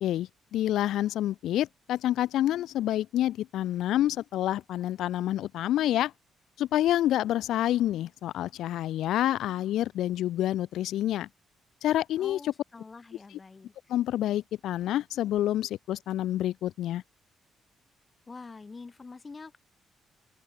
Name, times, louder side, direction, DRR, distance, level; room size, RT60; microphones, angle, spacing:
voice 1, 0.0-6.1 6.6-11.3 11.8-12.5 13.3-13.4 13.9-17.0, left 13 dB, 80° left, 0.6 m, -28 dB
voice 2, 12.2-13.7 18.3-19.6, left 4 dB, 30° left, 3.3 m, -46 dB
open air
cardioid pair, 90°, 0 cm